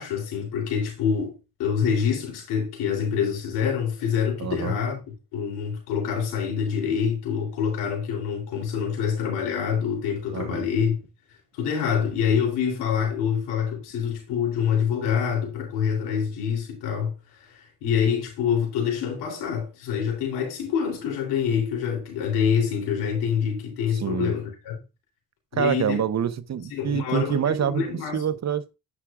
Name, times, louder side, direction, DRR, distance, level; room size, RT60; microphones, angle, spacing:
voice 1, 0.0-5.0 5.3-11.0 11.5-17.1 17.8-24.8 25.5-26.0 26.7-28.2, left 7 dB, 90° left, 3.3 m, -26 dB
voice 2, 4.4-4.8 10.3-10.7 23.9-24.3 25.5-28.7, right 8 dB, 45° right, 0.8 m, -26 dB
9.6 x 6.0 x 2.4 m
supercardioid pair, 60°, 39 cm